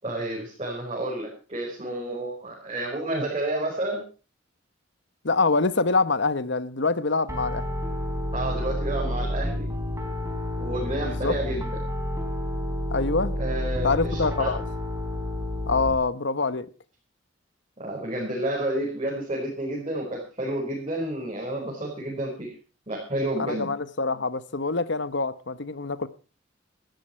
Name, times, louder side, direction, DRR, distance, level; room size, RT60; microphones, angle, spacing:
voice 1, 0.0-4.0 8.3-9.7 10.6-11.7 13.4-14.6 17.8-22.5 22.9-23.7, right 1 dB, 30° right, 5.1 m, -30 dB
voice 2, 5.2-7.7 11.0-11.4 12.9-13.3 13.8-14.6 15.7-16.7 23.4-26.1, left 3 dB, 60° left, 1.1 m, -25 dB
Piano, 7.3-15.9, left 1 dB, 15° right, 3.9 m, -30 dB
17.5 x 13.5 x 4.5 m
head